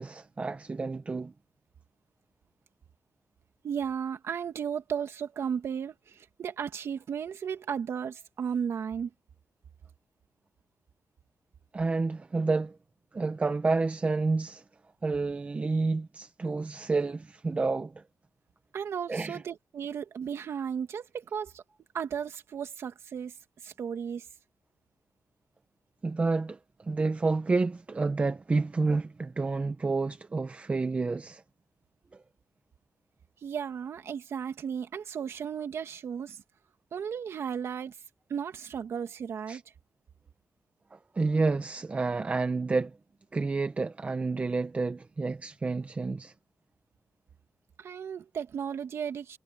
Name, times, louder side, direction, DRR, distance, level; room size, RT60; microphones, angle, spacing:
voice 1, 0.0-1.3 11.7-12.8 13.1-14.6 15.0-18.0 19.1-19.4 26.0-31.4 32.1-32.2 39.5-39.6 40.9-43.0 43.3-46.3, right 3 dB, 30° right, 0.9 m, -29 dB
voice 2, 3.6-9.1 18.7-21.6 21.9-23.3 23.6-24.3 33.4-36.4 36.9-37.9 38.3-39.6 47.8-49.4, right 7 dB, 70° right, 2.2 m, -35 dB
cardioid pair, 105°, 5 cm